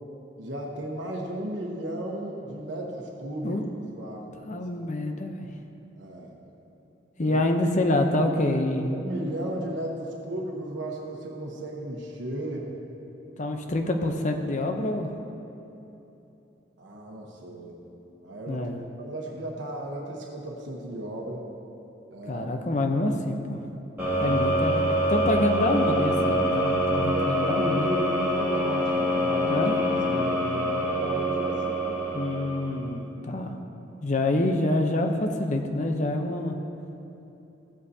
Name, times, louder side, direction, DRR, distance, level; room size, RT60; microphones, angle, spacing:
voice 1, 0.4-3.6 3.9-4.7 6.0-6.4 7.2-7.4 8.9-12.7 16.8-17.8 18.2-18.7 19.0-21.4 22.1-22.5 24.1-24.4 26.9-29.7 30.0-32.0, right 1 dB, 85° right, -2 dB, 1.1 m, -35 dB
voice 2, 4.4-5.6 7.2-9.0 13.4-15.1 18.5-18.8 22.3-23.6 24.2-27.9 29.5-29.8 32.1-33.6 34.0-36.6, left 1 dB, 40° left, 4 dB, 0.7 m, -26 dB
sound 1, 24.0-32.9, equal, 10° right, 2.1 m, -25 dB
15.5 x 7.9 x 2.8 m, 3.0 s
head